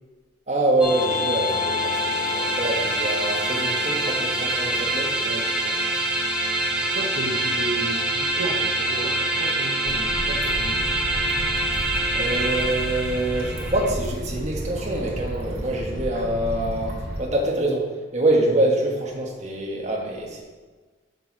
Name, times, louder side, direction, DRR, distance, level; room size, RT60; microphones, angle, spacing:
voice 1, 0.5-5.1 12.1-17.8 18.1-20.4, right 1 dB, 35° right, -1 dB, 1.4 m, -25 dB
sound 1, 0.8-13.9, right 1 dB, 5° right, 0.9 m, -25 dB
voice 2, 5.2-5.8 6.8-10.9, right 2 dB, 70° right, 2 dB, 0.7 m, -33 dB
sound 2, 9.8-17.2, right 1 dB, 50° right, 2.0 m, -32 dB
6.7 x 6.5 x 5.0 m, 1.3 s
head